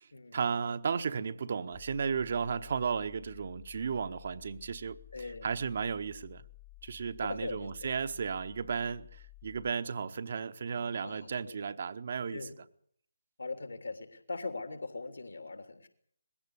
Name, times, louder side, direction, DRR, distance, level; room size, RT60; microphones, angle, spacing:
voice 1, 0.3-6.4 6.8-12.5, right 6 dB, 45° right, 1.0 m, -34 dB
sound 1, 1.7-9.7, left 17 dB, 35° left, 1.1 m, -54 dB
voice 2, 5.1-5.5 7.2-7.9 11.0-11.6 12.3-12.6 13.4-15.9, left 3 dB, 70° left, 3.3 m, -41 dB
21.0 x 16.0 x 9.8 m
figure-of-eight pair, 145°, 0 cm